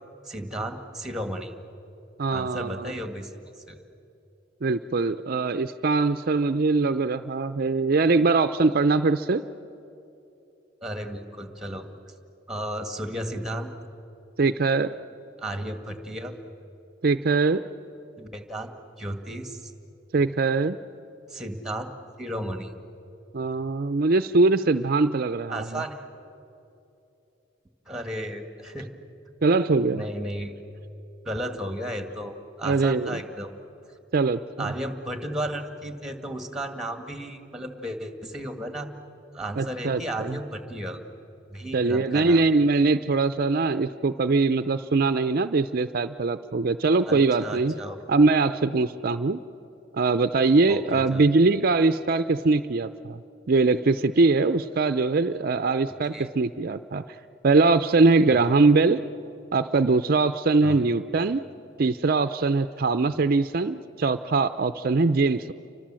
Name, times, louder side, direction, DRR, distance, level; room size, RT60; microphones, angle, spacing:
voice 1, 0.3-1.5 2.3-3.8 10.8-11.9 12.5-13.7 15.4-16.3 18.2-18.7 19.0-19.7 21.3-21.9 22.2-22.7 25.5-26.0 27.9-28.9 29.9-30.5 31.3-33.6 34.6-38.9 39.3-41.0 41.5-42.4 47.1-48.0 50.7-51.2 56.1-56.3 58.3-58.4 60.6-60.8, right 1 dB, 5° right, 6 dB, 1.9 m, -34 dB
voice 2, 2.2-2.9 4.6-9.4 14.4-14.9 17.0-17.6 20.1-20.8 23.3-25.8 29.4-30.0 32.6-33.2 34.1-34.7 39.6-40.4 41.7-47.7 48.1-49.4 49.9-53.2 53.5-57.0 57.4-59.0 59.5-61.4 61.8-65.5, right 3 dB, 50° right, 10 dB, 0.5 m, -22 dB
29.5 x 24.5 x 7.6 m, 2.9 s
head